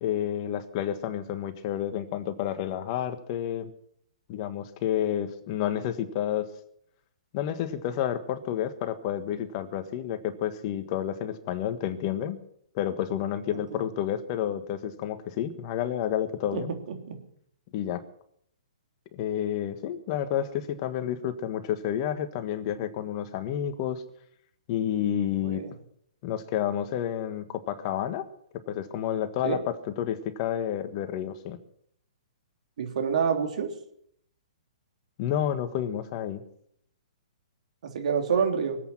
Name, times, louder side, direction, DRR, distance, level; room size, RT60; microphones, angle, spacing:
voice 1, 0.0-3.7 4.3-6.5 7.3-12.4 12.7-16.7 17.7-18.0 19.1-24.0 24.7-25.6 26.2-28.2 28.7-31.6 35.2-36.4, left 10 dB, 40° left, 9 dB, 1.6 m, -30 dB
voice 2, 32.8-33.7 37.9-38.8, right 6 dB, 65° right, 3 dB, 3.4 m, -27 dB
24.0 x 8.5 x 6.2 m, 0.69 s
hypercardioid pair, 135°, 4 cm